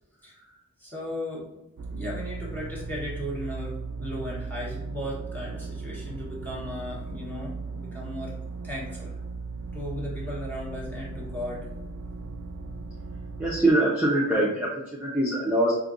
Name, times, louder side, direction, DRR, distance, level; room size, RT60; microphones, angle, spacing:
voice 1, 0.8-1.5 1.9-3.7 4.0-9.1 9.7-11.7, left 1 dB, 10° left, -5 dB, 1.1 m, -36 dB
sound 1, 1.8-13.6, right 4 dB, 75° right, 0.4 m, -37 dB
voice 2, 13.4-15.7, right 1 dB, 5° right, -6 dB, 0.5 m, -23 dB
5.0 x 2.6 x 2.5 m, 0.97 s
head